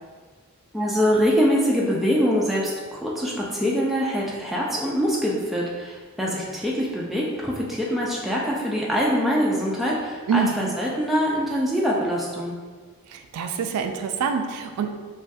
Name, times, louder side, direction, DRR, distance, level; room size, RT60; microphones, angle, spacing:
voice 1, 0.7-12.5, equal, ahead, -5 dB, 0.3 m, -24 dB
voice 2, 10.3-10.8 13.1-14.9, right 5 dB, 90° right, 8 dB, 0.3 m, -26 dB
3.3 x 2.3 x 2.6 m, 1.5 s
head